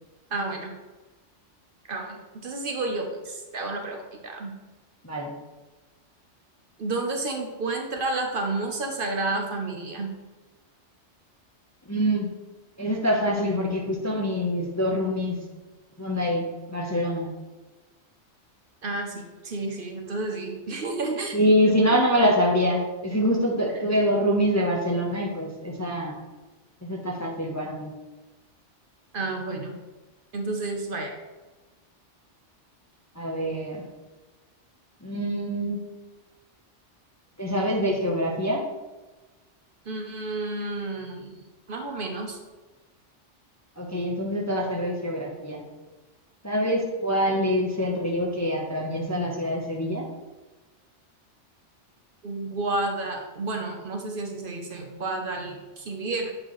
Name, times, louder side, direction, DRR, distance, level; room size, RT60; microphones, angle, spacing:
voice 1, 0.3-0.8 1.9-2.2 2.4-4.5 6.8-10.1 18.8-21.4 21.6-21.7 22.2-22.3 29.1-29.8 30.3-31.1 39.9-41.4 41.7-42.4 52.2-56.3, right 2 dB, 55° right, 3 dB, 0.8 m, -31 dB
voice 2, 11.9-12.3 12.8-15.4 16.0-17.3 21.3-26.2 26.8-27.9 33.2-33.8 35.0-35.8 37.4-38.6 43.8-45.6 46.4-50.1, equal, 20° left, -1 dB, 0.6 m, -25 dB
7.8 x 4.3 x 3.0 m, 1.2 s
omnidirectional pair, 1.2 m